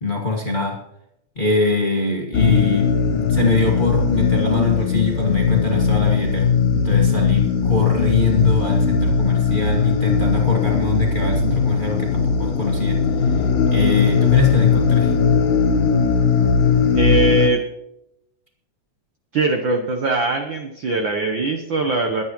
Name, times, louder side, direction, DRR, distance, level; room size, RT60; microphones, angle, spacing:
voice 1, 0.0-0.8 1.3-13.3 13.7-15.1, left 3 dB, 25° left, -1 dB, 1.2 m, -23 dB
sound 1, 2.3-17.5, left 5 dB, 90° left, 2.6 m, -18 dB
voice 2, 16.9-17.6 19.3-22.2, right 3 dB, 65° right, 4 dB, 1.2 m, -21 dB
22.0 x 9.4 x 3.0 m, 0.82 s
omnidirectional pair, 3.4 m